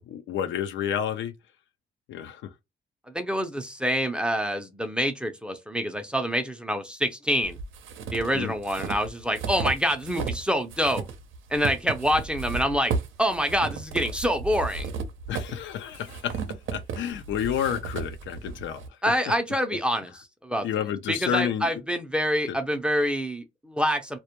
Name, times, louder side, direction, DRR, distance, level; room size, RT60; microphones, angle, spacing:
voice 1, 0.0-1.3 2.1-2.5 8.3-8.5 15.3-16.4 16.7-18.8 20.6-21.7 22.5-22.6, left 9 dB, 70° left, 0.5 m, -30 dB
voice 2, 3.1-7.6 8.1-11.1 11.5-14.9 19.0-20.1 20.4-20.7 21.1-24.2, equal, 5° right, 0.4 m, -26 dB
sound 1, 7.4-10.4 10.7-18.9, right 5 dB, 80° right, 0.5 m, -34 dB
2.1 x 2.1 x 2.9 m
cardioid pair, 90°, 20 cm